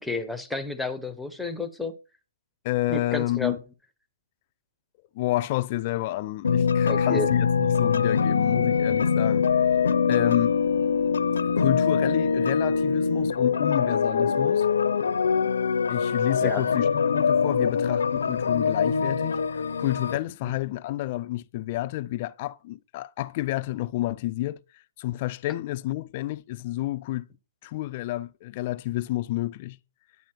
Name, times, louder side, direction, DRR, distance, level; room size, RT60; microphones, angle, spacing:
voice 1, 0.0-1.9 2.9-3.6 6.9-7.3 16.4-16.6 20.4-20.5, left 2 dB, ahead, 0.9 m, -31 dB
voice 2, 2.6-3.6 5.1-9.7 10.1-10.5 11.6-14.6 15.9-16.9 17.1-24.6 25.0-27.3 27.6-29.8, left 16 dB, 35° left, 0.5 m, -29 dB
sound 1, 6.4-20.2, left 6 dB, 80° left, 0.7 m, -23 dB
10.5 x 8.5 x 4.4 m
hypercardioid pair, 155°, 0 cm